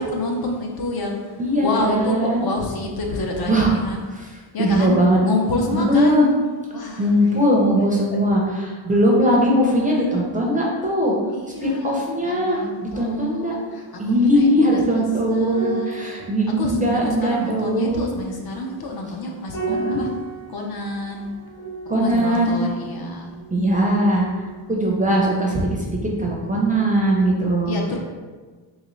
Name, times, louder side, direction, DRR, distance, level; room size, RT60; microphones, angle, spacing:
voice 1, 0.0-4.0 4.5-6.2 6.7-7.1 11.3-12.0 12.2-16.1 16.6-16.8 17.0-20.1 20.5-21.3 21.9-23.3 27.7-28.0, left 2 dB, 50° left, 1 dB, 0.6 m, -28 dB
voice 2, 1.4-2.5 3.5-3.8 4.2-4.3 4.6-5.2 5.7-6.3 7.0-11.1 11.6-13.5 14.0-18.1 19.7-20.0 21.9-22.5 23.5-24.4 24.7-27.8, equal, 20° right, -3 dB, 0.5 m, -20 dB
sound 1, 15.5-24.2 24.5-24.7, right 3 dB, 70° left, 1.4 m, -35 dB
3.9 x 2.9 x 3.0 m, 1.4 s
wide cardioid pair, 150°, 47 cm